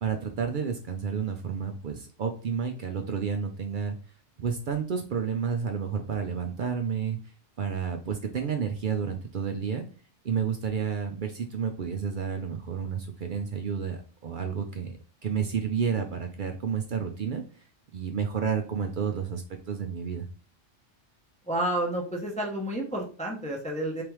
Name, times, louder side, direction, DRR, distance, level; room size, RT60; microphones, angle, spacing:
voice 1, 0.0-3.9 4.4-7.2 7.6-9.8 10.2-15.0 15.2-17.4 17.9-20.3, right 6 dB, 60° right, 5 dB, 0.5 m, -30 dB
voice 2, 21.4-24.0, right 1 dB, 10° left, 0 dB, 0.5 m, -30 dB
3.5 x 3.3 x 3.0 m, 0.37 s
omnidirectional pair, 1.3 m